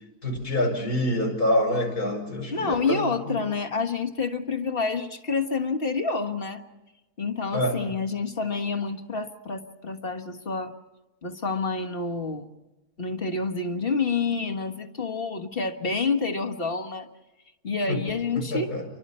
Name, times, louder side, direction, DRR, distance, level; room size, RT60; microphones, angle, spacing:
voice 1, 0.2-3.4 7.5-7.8 17.9-18.0 18.4-18.9, left 1 dB, 85° left, 3 dB, 6.0 m, -26 dB
voice 2, 2.5-6.6 7.2-10.7 11.2-12.6 13.0-17.1 17.6-18.7, left 4 dB, 40° left, 5 dB, 1.5 m, -28 dB
29.5 x 24.5 x 4.3 m, 1.0 s
omnidirectional pair, 1.6 m